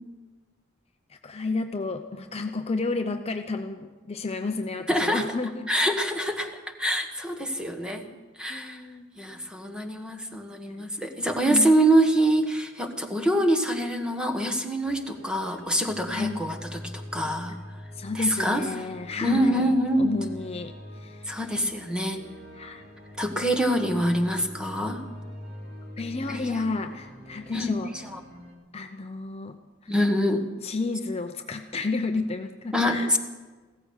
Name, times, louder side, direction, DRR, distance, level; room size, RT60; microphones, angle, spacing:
voice 1, 1.1-5.7 8.5-9.1 10.7-10.8 11.5-11.7 16.1-16.4 17.9-21.4 22.5-22.8 26.0-27.9 28.7-29.9 30.6-33.2, left 3 dB, 30° left, 6 dB, 0.6 m, -31 dB
voice 2, 4.9-5.2 5.7-6.5 6.8-8.1 8.4-8.8 9.2-17.6 18.1-18.6 19.2-20.1 21.3-22.2 23.2-25.0 26.3-26.6 27.5-27.7 29.9-30.5 32.7-33.2, right 1 dB, 5° right, 5 dB, 1.3 m, -25 dB
sound 1, 14.8-28.6, left 1 dB, 55° right, 2.5 m, -44 dB
16.0 x 14.0 x 6.4 m, 1.3 s
head